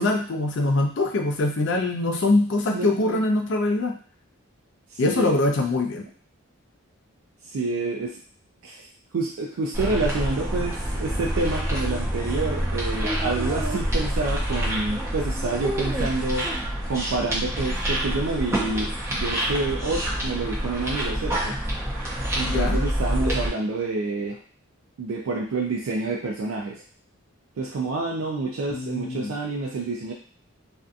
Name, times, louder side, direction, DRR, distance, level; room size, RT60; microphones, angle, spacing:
voice 1, 0.0-4.0 5.0-6.0 22.5-22.8 28.7-29.3, left 2 dB, 55° left, 3 dB, 0.4 m, -23 dB
voice 2, 2.7-3.2 4.9-5.4 7.5-8.2 8.6-8.9 9.1-16.5 16.9-21.5 22.4-24.4 25.0-26.8 27.6-30.1, right 3 dB, 75° right, -1 dB, 0.4 m, -28 dB
sound 1, 9.7-23.5, equal, 10° right, 0.5 m, -27 dB
2.6 x 2.3 x 2.4 m, 0.43 s
head